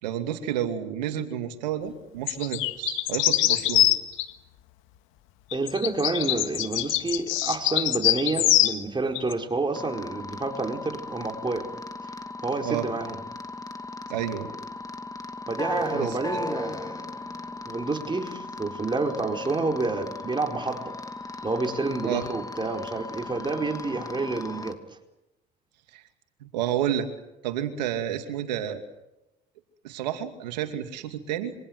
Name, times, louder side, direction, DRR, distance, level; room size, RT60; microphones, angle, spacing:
voice 1, 0.0-3.9 12.6-12.9 14.1-14.5 15.9-16.2 22.0-22.2 25.9-26.0 26.4-27.1 27.4-28.8 29.8-31.5, right 10 dB, 90° right, 7 dB, 2.6 m, -30 dB
sound 1, 2.3-4.3 5.5-8.8 9.2-9.3, left 15 dB, 70° left, 1.8 m, -23 dB
voice 2, 5.5-11.7 12.4-13.2 15.5-17.1 17.7-21.0 21.4-24.8, right 3 dB, 20° right, 3 dB, 4.7 m, -29 dB
sound 2, 9.7-24.7, left 2 dB, 15° left, 2.6 m, -37 dB
27.0 x 24.0 x 8.0 m, 0.94 s
hypercardioid pair, 70°, 21 cm